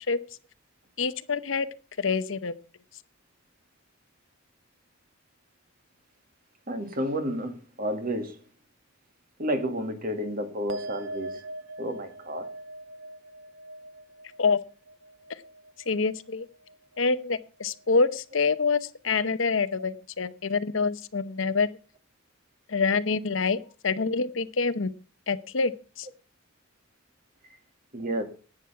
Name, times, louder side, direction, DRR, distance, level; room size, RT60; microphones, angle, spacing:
voice 1, 1.0-1.7 2.0-2.5 14.4-14.6 15.9-16.5 17.0-21.7 22.7-24.9 25.3-26.1, left 4 dB, 70° left, 0.8 m, -26 dB
voice 2, 6.7-8.4 9.4-11.4 11.8-12.5 27.9-28.2, equal, 45° right, 2.1 m, -31 dB
sound 1, 10.7-17.4 17.7-18.3, right 1 dB, 65° right, 1.2 m, -42 dB
11.0 x 9.1 x 5.7 m
head